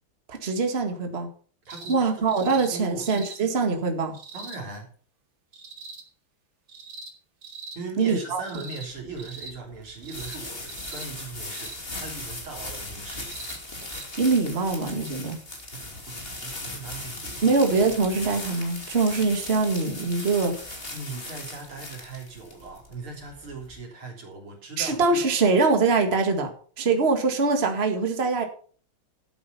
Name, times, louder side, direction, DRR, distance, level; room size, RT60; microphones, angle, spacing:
voice 1, 0.3-1.3 1.9-4.1 8.0-8.4 14.2-15.4 17.4-20.7 24.8-26.5 26.8-28.4, right 4 dB, 30° right, 4 dB, 2.1 m, -23 dB
voice 2, 1.6-3.1 4.3-4.9 7.7-13.5 15.7-17.5 20.9-25.0, right 3 dB, 85° right, 1 dB, 4.4 m, -39 dB
sound 1, 1.7-2.0 2.3-2.7 3.0-3.4 4.1-4.6 5.5-6.0 6.7-7.1 7.4-7.8 8.4-8.9 9.2-9.5 10.0-10.4 10.7-11.1 11.5-11.8 13.1-13.6 13.9-14.1 15.1-15.2, right 3 dB, 65° right, 2.8 m, -42 dB
sound 2, 8.9-23.8, left 2 dB, 25° left, 2.8 m, -38 dB
13.0 x 8.7 x 5.6 m, 0.43 s
omnidirectional pair, 2.3 m